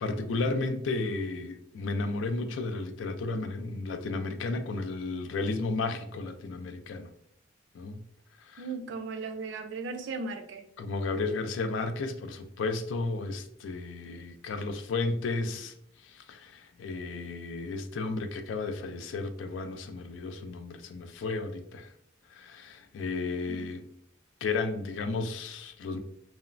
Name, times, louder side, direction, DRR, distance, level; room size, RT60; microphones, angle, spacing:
voice 1, 0.0-7.1 7.7-8.0 8.5-8.6 10.8-15.7 16.0-21.9 22.3-23.9 24.4-26.0, left 3 dB, 80° left, 0.3 m, -33 dB
voice 2, 8.6-10.7 23.5-23.8, right 4 dB, 70° right, 0.3 m, -37 dB
2.9 x 2.0 x 2.4 m
head